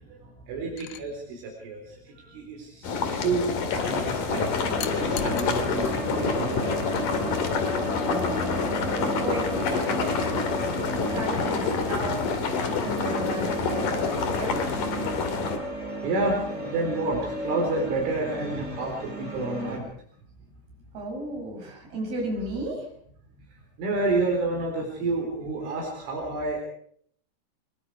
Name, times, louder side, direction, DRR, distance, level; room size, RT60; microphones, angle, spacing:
voice 1, 0.5-1.8 2.3-3.5 3.7-4.5 4.9-6.8 16.0-19.9 23.8-26.6, right 3 dB, 75° right, 0 dB, 6.5 m, -29 dB
sound 1, 0.8-1.0 4.8-5.7 7.1-7.3, left 12 dB, 70° left, 2.5 m, -38 dB
sound 2, 2.8-15.6, left 5 dB, 50° left, 3.4 m, -27 dB
sound 3, 4.3-19.8, right 1 dB, 15° right, 4.6 m, -34 dB
voice 2, 8.0-8.7 9.2-10.5 11.1-12.3 12.6-14.7 20.9-22.9, right 1 dB, 50° right, 0 dB, 8.3 m, -34 dB
25.0 x 22.0 x 4.8 m, 0.62 s
omnidirectional pair, 5.7 m